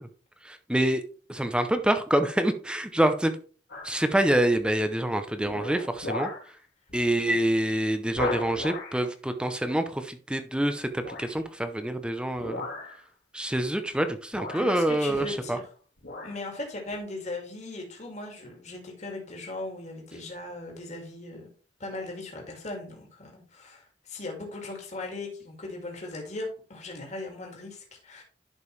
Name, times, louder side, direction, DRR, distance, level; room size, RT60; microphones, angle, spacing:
voice 1, 0.4-1.0 1.3-3.4 3.8-6.3 6.9-12.6 13.3-15.6, right 1 dB, 5° right, 8 dB, 0.7 m, -26 dB
sound 1, 3.7-4.0 4.6-4.9 5.4-6.5 6.9-7.1 7.4-7.5 8.1-9.0 11.0-11.4 12.3-13.0 13.9-14.0 14.3-15.7 16.0-16.4 16.9-17.0, left 2 dB, 85° left, 2.6 m, -36 dB
voice 2, 14.5-15.7 16.2-21.5 21.8-28.2, left 2 dB, 40° left, 1 dB, 2.3 m, -38 dB
11.0 x 5.3 x 3.2 m, 0.39 s
head